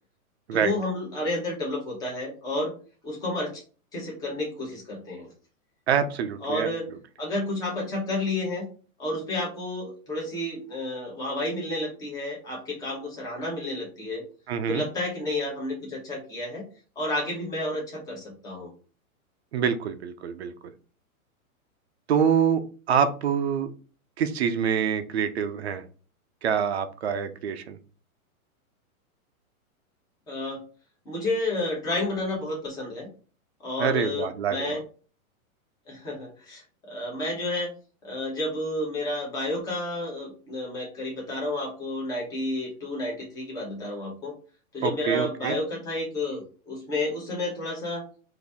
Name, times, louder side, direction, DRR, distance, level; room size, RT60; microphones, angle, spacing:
voice 1, 0.5-2.7 3.0-3.6 3.9-5.3 6.4-6.9 7.2-8.7 9.0-14.2 14.7-16.7 17.0-18.7 30.3-30.6 31.1-33.1 33.6-34.8 35.9-37.7 38.0-44.3 44.7-48.1, left 2 dB, 10° left, -3 dB, 0.9 m, -31 dB
voice 2, 5.9-6.7 14.5-14.8 19.5-20.5 22.1-22.6 22.9-23.7 24.2-25.8 26.4-27.8 33.8-34.8 44.8-45.6, right 7 dB, 50° right, 9 dB, 0.5 m, -25 dB
4.0 x 2.7 x 3.4 m, 0.38 s
hypercardioid pair, 165°, 44 cm